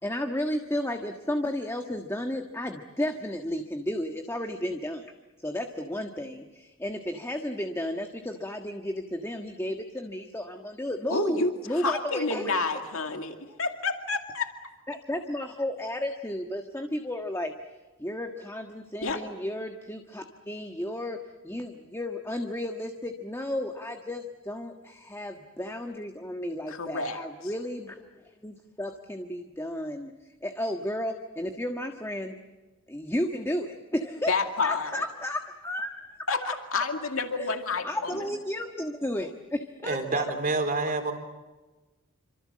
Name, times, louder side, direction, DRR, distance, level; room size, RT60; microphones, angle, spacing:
voice 1, 0.0-5.1 5.4-12.5 13.4-13.5 14.9-17.5 18.0-21.2 21.4-30.1 30.4-32.3 32.9-34.3 34.6-36.1 36.4-36.5 37.4-37.5 37.8-40.3, left 1 dB, 10° left, 4 dB, 1.5 m, -33 dB
voice 2, 11.1-11.5 11.8-14.5 19.0-19.2 26.7-27.2 34.3-35.0 36.3-38.1, left 3 dB, 70° left, 5 dB, 2.3 m, -29 dB
voice 3, 39.8-41.1, right 3 dB, 40° right, 4 dB, 4.1 m, -27 dB
28.5 x 26.0 x 7.6 m, 1.2 s
head